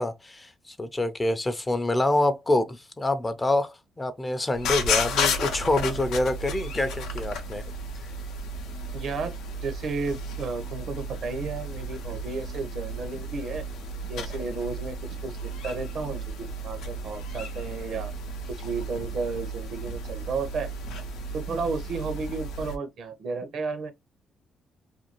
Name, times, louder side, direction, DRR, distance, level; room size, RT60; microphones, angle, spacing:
voice 1, 0.0-7.6, left 2 dB, 20° left, 0.5 m, -26 dB
sound 1, 4.5-22.8, left 1 dB, 85° left, 0.6 m, -33 dB
voice 2, 8.9-9.3 9.6-13.7 14.1-18.1 18.6-20.7 21.3-23.9, right 4 dB, 65° right, 0.7 m, -33 dB
2.6 x 2.3 x 2.8 m
cardioid pair, 90°, 0 cm